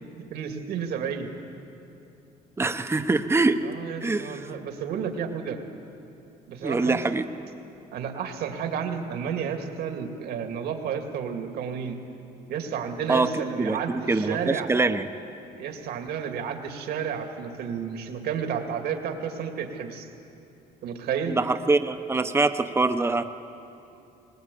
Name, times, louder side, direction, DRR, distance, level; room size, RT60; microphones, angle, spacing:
voice 1, 0.3-1.3 3.6-5.6 6.5-7.2 7.9-12.0 12.5-14.7 15.6-20.1 20.8-21.4, right 7 dB, 70° right, 4 dB, 2.3 m, -31 dB
voice 2, 2.6-3.6 4.0-4.4 6.6-7.3 13.1-13.3 13.6-15.0 21.3-23.3, right 3 dB, 15° right, 9 dB, 0.9 m, -24 dB
20.5 x 20.0 x 8.5 m, 2.8 s
cardioid pair, 110°, 17 cm